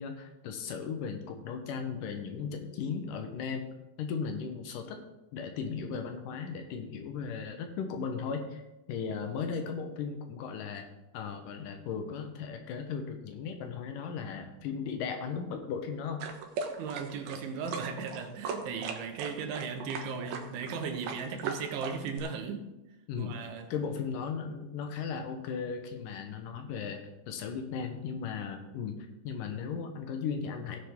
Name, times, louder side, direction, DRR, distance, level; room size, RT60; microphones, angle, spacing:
voice 1, 0.0-3.7 4.0-5.0 5.3-8.6 8.9-10.9 11.1-16.3 23.1-23.4 23.7-27.0 27.3-29.0 29.2-30.8, left 6 dB, 85° left, 1.9 m, -36 dB
sound 1, 16.2-22.2, right 5 dB, 70° right, 2.5 m, -38 dB
voice 2, 16.8-22.7 23.2-23.7, right 5 dB, 90° right, 3.5 m, -37 dB
17.0 x 7.5 x 3.7 m
omnidirectional pair, 5.2 m